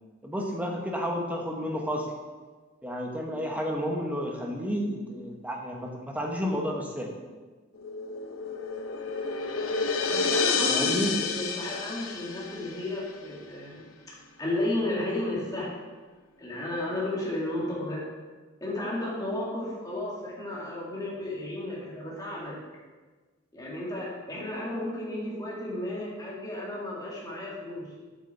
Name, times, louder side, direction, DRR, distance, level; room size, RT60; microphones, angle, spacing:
voice 1, 0.2-2.1 2.8-7.1 10.7-11.2, equal, 5° right, 0 dB, 1.1 m, -31 dB
sound 1, 7.7-13.0, left 4 dB, 80° left, 0.7 m, -29 dB
voice 2, 9.8-13.9 14.4-15.7 16.4-18.1 18.6-22.5 23.5-27.9, left 1 dB, 20° left, -5 dB, 2.1 m, -33 dB
8.1 x 6.0 x 4.6 m, 1.3 s
head